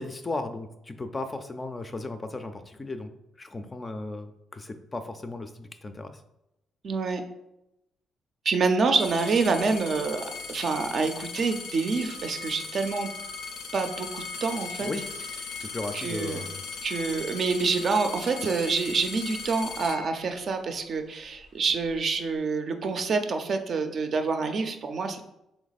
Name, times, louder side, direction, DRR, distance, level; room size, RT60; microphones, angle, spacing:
voice 1, 0.0-3.1 3.4-6.1 14.8-15.0 15.6-16.6, left 2 dB, 25° left, 8 dB, 0.4 m, -36 dB
voice 2, 6.8-7.2 8.5-13.1 13.7-14.9 15.9-16.4 16.8-25.2, right 4 dB, 55° right, 6 dB, 0.5 m, -27 dB
sound 1, 9.0-20.7 21.4-22.0, left 4 dB, 80° left, 0.5 m, -38 dB
3.4 x 3.0 x 4.0 m, 0.86 s
cardioid pair, 90°, 0 cm